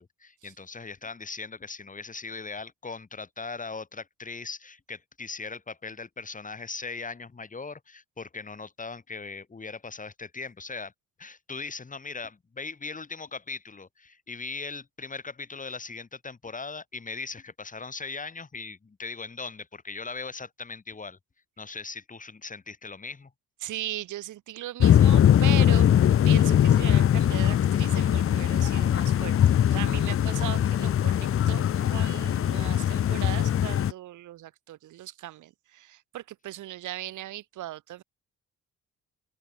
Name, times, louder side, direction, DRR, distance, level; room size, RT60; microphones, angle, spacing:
voice 1, 0.0-10.9 11.2-21.2 21.6-23.3, left 4 dB, 25° left, 2.8 m, -39 dB
voice 2, 23.6-26.0 26.2-29.4 29.7-38.0, right 14 dB, 80° right, 1.8 m, -38 dB
sound 1, 24.8-33.9, left 10 dB, 45° left, 0.7 m, -21 dB
open air
cardioid pair, 90°, 30 cm